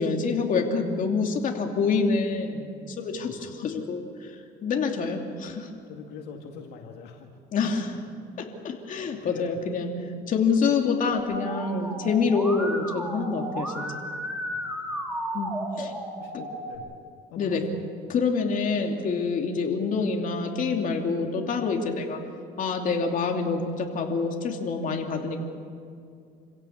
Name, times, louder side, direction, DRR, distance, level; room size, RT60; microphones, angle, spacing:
voice 1, 0.0-5.7 7.5-8.0 8.4-13.8 15.3-15.9 17.4-17.6 18.1-22.2 22.6-25.4, left 4 dB, 50° left, 2 dB, 2.8 m, -27 dB
voice 2, 3.1-3.4 5.9-7.3 9.2-9.6 14.5-15.1 16.2-16.9 17.3-17.6, left 6 dB, 85° left, 2 dB, 2.1 m, -43 dB
Musical instrument, 11.2-16.8, right 1 dB, 5° right, 3.6 m, -34 dB
27.0 x 16.5 x 7.3 m, 2.3 s
cardioid pair, 110°, 17 cm